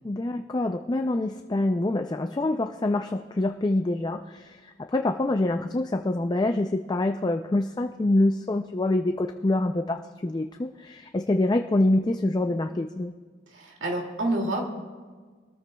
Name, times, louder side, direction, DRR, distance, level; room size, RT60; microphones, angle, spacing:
voice 1, 0.0-13.1, left 2 dB, 20° left, 6 dB, 0.4 m, -26 dB
voice 2, 13.5-14.6, right 1 dB, 75° right, 1 dB, 2.4 m, -28 dB
24.0 x 13.5 x 2.3 m, 1.5 s
head